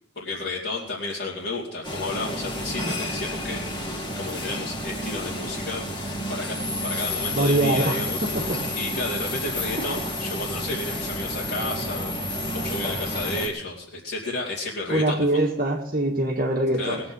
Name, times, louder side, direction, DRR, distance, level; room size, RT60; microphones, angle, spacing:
voice 1, 0.1-6.5 6.8-12.1 12.5-15.4 16.8-17.0, left 2 dB, 65° left, -7 dB, 2.9 m, -32 dB
sound 1, 1.8-13.5, left 1 dB, 25° left, 2.4 m, -30 dB
voice 2, 7.3-8.6 14.9-17.0, right 1 dB, 45° right, 1 dB, 1.7 m, -23 dB
21.0 x 8.0 x 5.5 m, 0.72 s
head